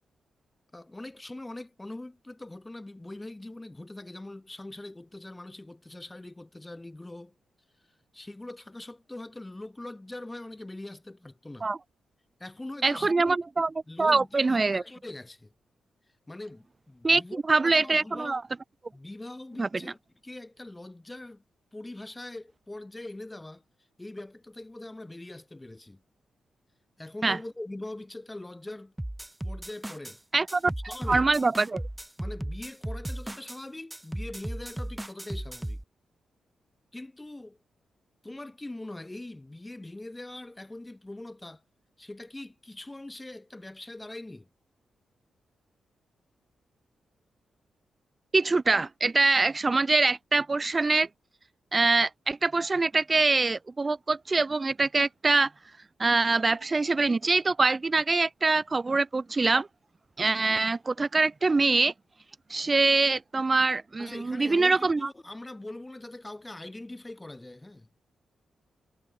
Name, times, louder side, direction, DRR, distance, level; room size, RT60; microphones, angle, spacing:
voice 1, 0.7-7.3 8.1-11.7 12.4-13.4 13.9-15.5 16.3-18.4 18.9-20.0 20.2-21.4 21.7-23.6 24.0-26.0 27.0-28.9 29.4-30.2 30.9-31.3 32.2-35.8 36.9-37.6 38.2-41.6 42.0-44.5 64.0-68.1, left 2 dB, 15° left, 1.2 m, -42 dB
voice 2, 12.8-13.7 14.0-14.8 17.0-17.2 17.5-18.4 19.6-19.7 27.2-27.4 30.3-30.6 31.1-31.8 48.3-51.1 51.7-55.5 56.0-59.7 60.2-61.9 62.5-65.1, right 3 dB, 25° right, 0.3 m, -24 dB
sound 1, 29.0-30.2 30.5-33.6 33.9-35.8, right 1 dB, 5° right, 1.2 m, -36 dB
cardioid pair, 120°, 0 cm